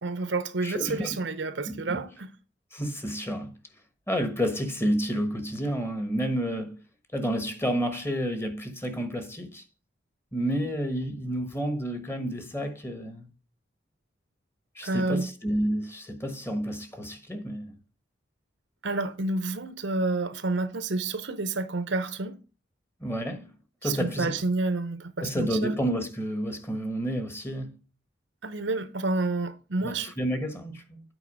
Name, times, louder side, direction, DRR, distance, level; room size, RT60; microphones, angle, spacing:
voice 1, 0.0-2.3 14.8-15.3 18.8-22.4 23.8-25.7 28.4-30.1, right 3 dB, 70° right, 0.8 m, -29 dB
voice 2, 0.6-1.2 1.7-2.0 2.7-3.5 4.1-6.8 7.1-9.6 10.3-13.3 14.7-17.7 23.0-23.5 23.8-24.4 25.2-27.7 29.8-31.0, equal, 15° left, 1.2 m, -30 dB
8.3 x 4.6 x 4.8 m
head